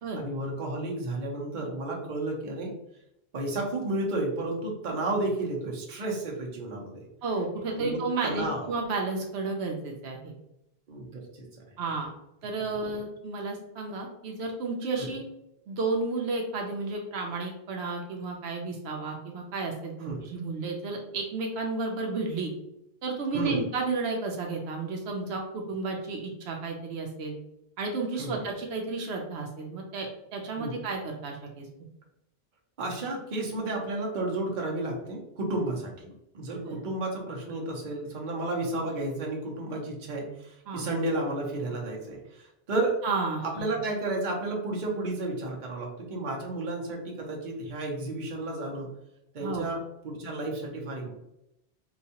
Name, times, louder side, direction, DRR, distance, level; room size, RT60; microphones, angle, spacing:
voice 1, 0.1-2.7 3.3-7.0 7.7-8.7 10.9-11.4 15.0-15.1 20.0-20.2 23.3-23.6 28.2-28.4 30.6-30.8 32.8-43.0 43.4-48.9 49.3-51.1, right 2 dB, 50° right, -2 dB, 0.9 m, -32 dB
voice 2, 7.2-10.3 11.8-12.1 12.4-15.2 15.7-22.5 23.0-27.4 27.8-31.7 36.5-36.8 40.7-40.9 43.0-43.6 49.4-49.7, right 3 dB, 80° right, 1 dB, 0.9 m, -32 dB
4.0 x 2.3 x 2.8 m, 0.83 s
omnidirectional pair, 1.1 m